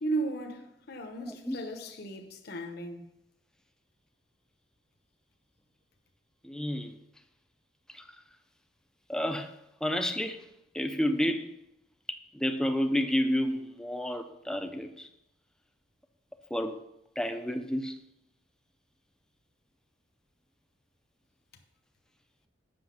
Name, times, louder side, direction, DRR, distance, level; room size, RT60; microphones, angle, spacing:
voice 1, 0.0-3.1, right 2 dB, 55° left, 0.9 m, -35 dB
voice 2, 1.3-1.6 6.4-7.0 7.9-8.0 9.1-9.5 9.8-10.4 10.7-11.5 12.1-15.1 16.5-16.8 17.2-18.0, equal, 5° left, 0.6 m, -30 dB
7.8 x 6.3 x 5.9 m
head